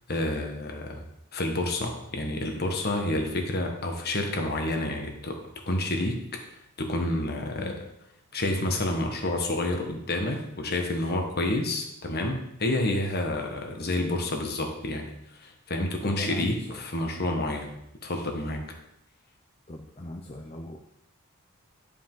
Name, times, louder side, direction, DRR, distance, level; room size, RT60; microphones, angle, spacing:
voice 1, 0.1-1.0 1.3-6.2 6.8-7.7 8.3-17.7 18.0-18.6, left 1 dB, 45° left, 3 dB, 1.3 m, -29 dB
voice 2, 16.0-16.8 18.4-18.6 19.7-20.8, left 2 dB, 30° left, 1 dB, 0.6 m, -38 dB
11.5 x 5.0 x 3.8 m, 0.81 s
head